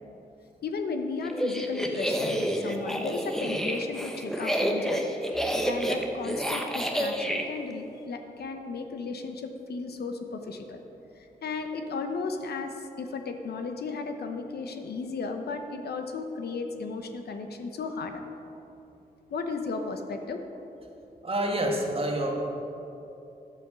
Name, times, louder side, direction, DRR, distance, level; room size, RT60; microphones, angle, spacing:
voice 1, 0.6-5.1 5.7-10.8 11.4-18.2 19.3-20.4, left 4 dB, 85° left, 6 dB, 0.9 m, -35 dB
sound 1, 1.3-7.4, equal, 5° left, 1.0 m, -29 dB
voice 2, 21.2-22.4, right 1 dB, 35° right, 0 dB, 1.7 m, -27 dB
11.0 x 8.0 x 6.1 m, 3.0 s
wide cardioid pair, 105°, 16 cm